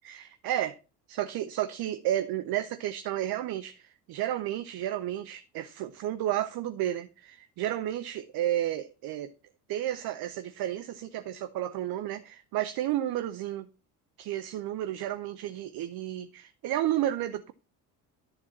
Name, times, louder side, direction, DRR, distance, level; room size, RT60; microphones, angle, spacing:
voice 1, 0.0-0.8 1.1-9.3 9.7-13.7 14.2-17.5, right 12 dB, 50° right, 0.7 m, -32 dB
10.5 x 4.5 x 7.2 m
hypercardioid pair, 55°, 49 cm